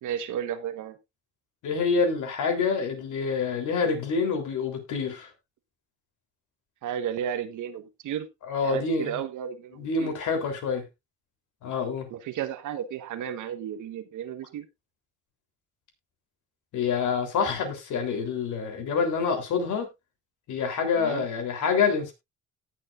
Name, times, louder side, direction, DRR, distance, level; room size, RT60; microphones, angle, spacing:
voice 1, 0.0-1.0 6.8-8.3 8.6-10.1 12.1-14.7 20.9-21.2, right 9 dB, 80° right, 11 dB, 1.3 m, -33 dB
voice 2, 1.6-5.3 8.5-9.2 9.7-10.8 11.6-12.1 16.7-19.9 20.5-22.1, left 5 dB, 80° left, 4 dB, 3.6 m, -27 dB
18.0 x 6.5 x 2.5 m, 0.21 s
cardioid pair, 90°, 30 cm